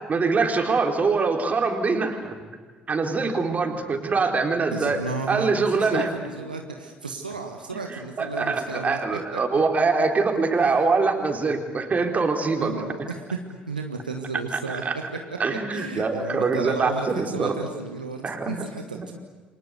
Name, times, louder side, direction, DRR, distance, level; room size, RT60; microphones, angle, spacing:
voice 1, 0.1-2.4 2.9-5.0 5.3-6.1 7.7-12.8 14.7-15.0 15.4-17.6 18.2-18.5 18.9-19.1, right 4 dB, 35° right, 4 dB, 4.0 m, -24 dB
voice 2, 4.7-9.8 10.6-10.7 12.6-13.2 13.7-14.8 15.5-19.1, right 4 dB, 85° right, 3 dB, 1.6 m, -34 dB
29.0 x 24.5 x 8.1 m, 1.5 s
figure-of-eight pair, 50°, 5 cm